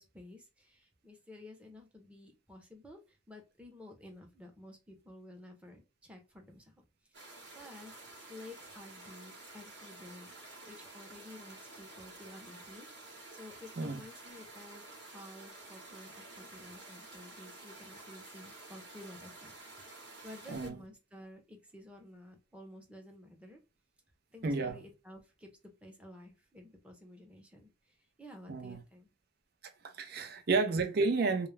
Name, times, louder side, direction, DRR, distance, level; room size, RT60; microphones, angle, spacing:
voice 1, 0.0-7.2 7.5-8.0 8.3-10.3 10.6-19.9 20.2-23.6 24.3-29.1 30.2-30.3, left 1 dB, 5° right, 0.7 m, -52 dB
sound 1, 7.1-20.7, right 2 dB, 90° right, 1.0 m, -51 dB
voice 2, 24.4-24.7 28.5-28.8 29.8-31.5, right 3 dB, 60° right, 0.5 m, -31 dB
2.3 x 2.1 x 3.1 m
head